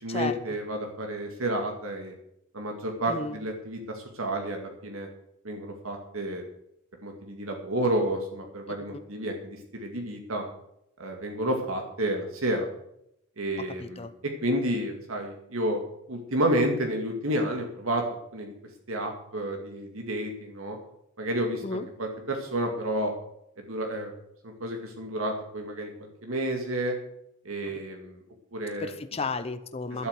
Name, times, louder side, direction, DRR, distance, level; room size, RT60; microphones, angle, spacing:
voice 1, 0.0-2.1 2.5-5.1 5.4-6.5 7.0-10.4 11.0-12.7 13.4-15.8 16.1-18.0 18.3-18.5 18.9-20.8 21.2-23.1 23.6-24.1 24.4-27.0 27.4-28.2 28.5-28.9 30.0-30.1, right 1 dB, 90° right, 2 dB, 2.2 m, -30 dB
voice 2, 13.8-14.1 21.6-21.9 27.7-27.8 28.8-30.1, left 4 dB, 30° left, 9 dB, 0.7 m, -33 dB
11.5 x 8.3 x 8.1 m, 0.78 s
head